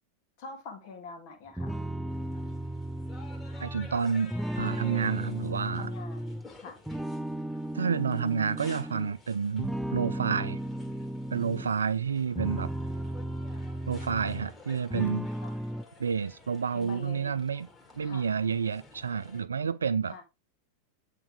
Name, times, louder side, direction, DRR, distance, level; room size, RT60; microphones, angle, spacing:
voice 1, 0.4-1.8 5.8-6.8 11.5-12.0 15.4-15.5 16.7-17.4 18.0-18.3 20.0-20.2, left 4 dB, 45° left, 1.9 m, -45 dB
sound 1, 1.6-6.5 6.9-9.1 9.6-11.7 12.2-14.6 14.9-15.8, right 1 dB, 5° right, 0.3 m, -35 dB
sound 2, 2.1-19.4, left 3 dB, 15° left, 2.1 m, -52 dB
voice 2, 3.6-5.9 7.7-10.6 11.3-12.7 13.9-15.3 16.0-17.7 17.9-20.2, right 6 dB, 70° right, 0.4 m, -30 dB
8.6 x 3.9 x 3.6 m
figure-of-eight pair, 90°, 0 cm